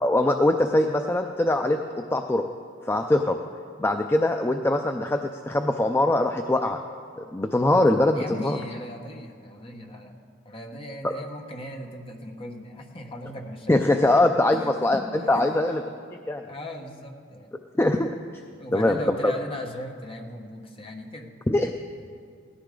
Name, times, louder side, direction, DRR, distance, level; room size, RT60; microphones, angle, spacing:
voice 1, 0.0-1.8 2.1-2.4 2.9-3.4 3.8-5.2 5.5-6.8 7.2-8.6 11.0-11.1 13.7-15.0 15.3-15.8 16.3-16.4 17.8-18.1 18.7-19.3 21.5-21.7, left 1 dB, 10° left, 5 dB, 0.4 m, -22 dB
voice 2, 8.1-10.2 10.4-14.2 14.5-14.6 14.9-15.5 16.4-17.5 18.6-21.3, left 1 dB, 25° left, 2 dB, 1.2 m, -38 dB
17.5 x 13.5 x 3.8 m, 2.2 s
head